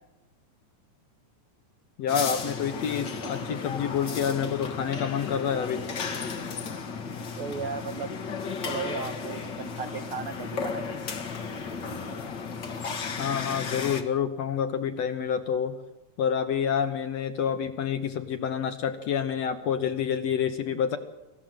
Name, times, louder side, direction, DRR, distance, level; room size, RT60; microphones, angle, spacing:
voice 1, 2.0-5.8 13.2-15.8 16.2-21.0, left 8 dB, 65° left, 8 dB, 1.9 m, -28 dB
sound 1, 2.1-14.0, left 5 dB, 45° left, 1.7 m, -34 dB
voice 2, 7.4-8.1 8.5-11.0, right 5 dB, 70° right, 7 dB, 1.3 m, -36 dB
27.0 x 15.0 x 7.6 m, 1.0 s
omnidirectional pair, 3.9 m